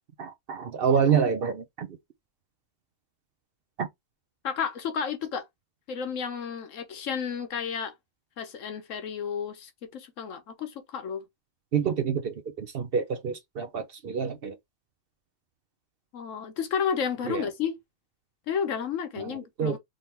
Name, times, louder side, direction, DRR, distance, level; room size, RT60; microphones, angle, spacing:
voice 1, 0.2-2.0 3.8-3.9 11.7-14.6 17.2-17.5 19.2-19.8, right 7 dB, 55° right, 0.8 m, -27 dB
voice 2, 4.4-5.5 5.9-7.9 8.4-11.2 16.1-17.8 18.5-19.8, left 7 dB, 75° left, 1.2 m, -32 dB
3.8 x 2.8 x 3.2 m
omnidirectional pair, 1.3 m